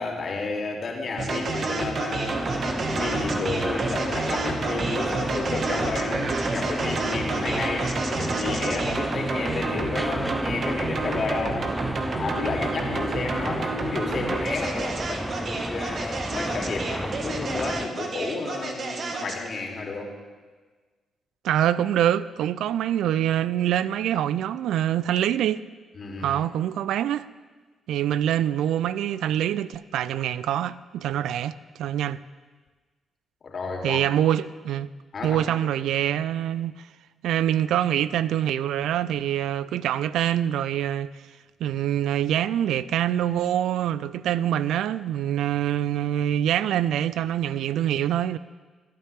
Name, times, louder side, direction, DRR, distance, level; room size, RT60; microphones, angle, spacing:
voice 1, 0.0-2.5 2.9-11.7 12.2-20.1 25.9-26.4 33.4-34.1 35.1-35.4, left 3 dB, 50° left, 2.7 m, -31 dB
sound 1, 1.2-19.5, right 3 dB, 55° right, 1.5 m, -30 dB
sound 2, 2.3-17.9, right 1 dB, 10° right, 0.5 m, -32 dB
voice 2, 21.4-25.6 26.2-27.3 27.9-32.2 33.8-34.9 35.2-36.9 37.2-41.1 41.6-48.4, right 11 dB, 75° right, 0.3 m, -25 dB
27.0 x 9.3 x 3.4 m
hypercardioid pair, 45°, 0 cm